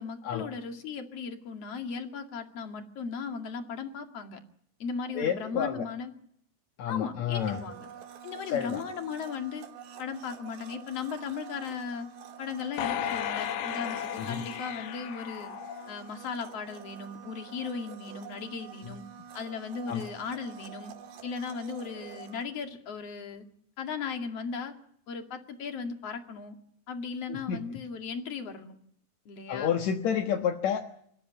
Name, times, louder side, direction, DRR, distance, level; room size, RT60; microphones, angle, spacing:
voice 1, 0.0-4.4 4.8-6.1 6.9-7.9 8.2-9.6 10.0-12.1 12.4-15.5 15.9-19.0 19.3-20.9 21.2-23.4 23.8-24.7 25.1-26.5 26.9-28.7 29.3-29.8, left 5 dB, 45° left, 5 dB, 2.8 m, -37 dB
voice 2, 5.1-5.9 6.8-7.6 8.5-8.8 14.2-14.5 19.9-20.1 27.3-27.6 29.5-30.8, left 8 dB, 60° left, 4 dB, 2.0 m, -29 dB
Domestic sounds home sounds, 7.3-22.5, right 8 dB, 80° right, 4.2 m, -47 dB
sound 1, 12.8-16.2 16.7-16.8, left 10 dB, 90° left, 3.5 m, -35 dB
27.0 x 14.0 x 9.7 m, 0.71 s
omnidirectional pair, 4.7 m